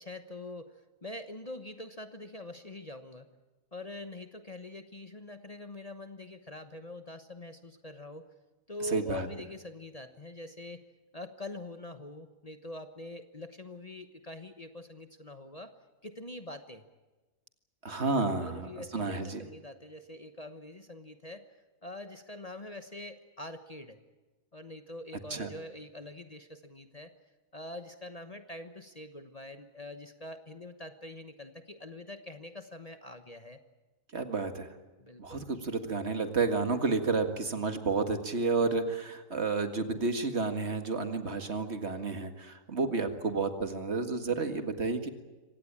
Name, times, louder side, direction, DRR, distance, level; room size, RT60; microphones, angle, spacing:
voice 1, 0.0-3.3 3.7-8.2 8.7-10.8 11.1-15.7 16.0-16.8 18.4-21.6 21.8-24.0 24.5-27.1 27.5-33.6 35.0-35.5 44.2-44.9, left 1 dB, 30° left, 8 dB, 1.2 m, -44 dB
voice 2, 8.9-9.3 17.8-19.4 25.3-25.5 34.1-34.7 35.2-45.1, right 4 dB, 50° right, 8 dB, 2.1 m, -31 dB
25.0 x 18.5 x 8.8 m, 1.2 s
omnidirectional pair, 1.4 m